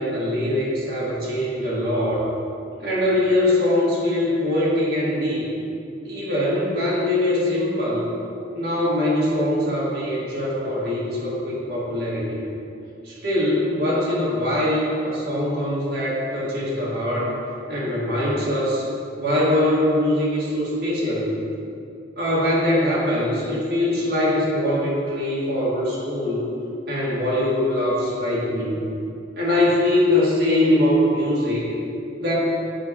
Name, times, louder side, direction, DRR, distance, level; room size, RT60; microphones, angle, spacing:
voice 1, 0.0-2.3 2.8-5.5 6.0-8.1 8.5-12.4 13.0-17.3 17.7-18.9 19.2-21.3 22.2-26.5 26.9-28.8 29.4-31.7 32.2-32.3, left 1 dB, 60° right, -7 dB, 1.9 m, -22 dB
7.8 x 6.3 x 4.3 m, 2.6 s
head